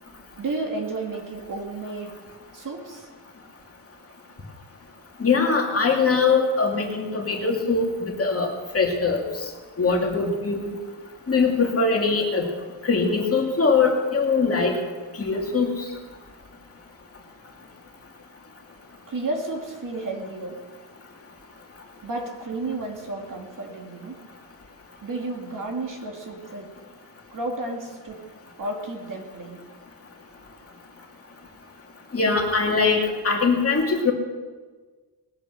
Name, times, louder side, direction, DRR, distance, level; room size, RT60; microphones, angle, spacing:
voice 1, 0.4-2.2 2.5-3.1 19.1-20.6 22.0-24.2 25.0-26.7 27.3-28.2 28.6-29.6, right 2 dB, 45° right, 2 dB, 2.4 m, -32 dB
voice 2, 5.2-8.5 8.7-9.2 9.8-10.7 11.3-12.5 12.8-14.8 15.2-15.7 32.1-34.1, left 4 dB, 35° left, 0 dB, 2.4 m, -22 dB
20.0 x 8.9 x 6.6 m, 1.4 s
wide cardioid pair, 155°, 43 cm